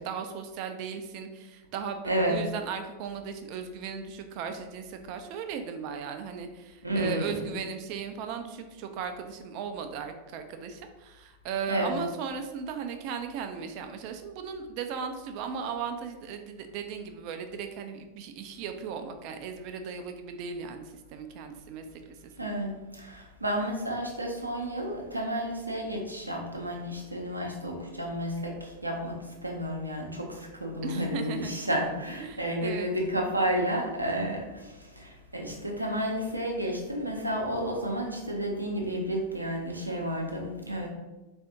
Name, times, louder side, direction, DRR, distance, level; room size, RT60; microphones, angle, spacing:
voice 1, 0.0-20.8 21.1-22.6 30.8-31.5 32.2-32.9, right 6 dB, 45° right, 7 dB, 0.4 m, -37 dB
voice 2, 2.0-2.4 6.8-7.5 11.7-12.0 22.4-40.9, right 1 dB, 85° right, 0 dB, 0.7 m, -31 dB
4.2 x 2.6 x 3.6 m, 1.1 s
figure-of-eight pair, 90°, 0 cm